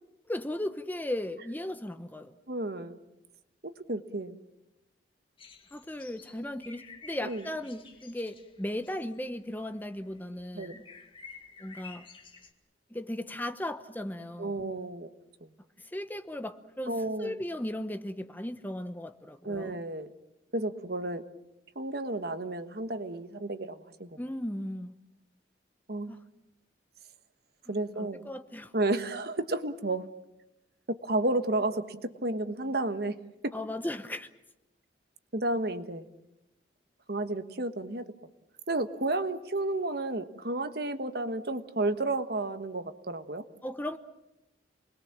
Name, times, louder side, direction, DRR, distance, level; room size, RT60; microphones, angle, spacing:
voice 1, 0.3-2.3 5.7-10.8 11.6-12.1 12.9-14.7 15.8-19.9 24.2-25.0 26.1-26.2 27.7-28.7 33.5-34.3 43.6-44.0, left 1 dB, 10° left, 8 dB, 0.9 m, -37 dB
voice 2, 2.5-3.0 3.6-4.4 7.2-7.4 10.5-10.7 14.4-15.1 16.9-17.4 19.4-20.1 20.5-21.2 21.7-24.2 25.9-26.1 27.7-28.2 28.7-30.1 30.9-33.1 33.4-33.5 35.3-36.1 37.1-38.1 38.7-43.4, right 2 dB, 60° right, 10 dB, 1.4 m, -32 dB
sound 1, 5.4-12.5, left 5 dB, 30° left, 2.0 m, -52 dB
28.5 x 21.0 x 7.4 m, 0.92 s
head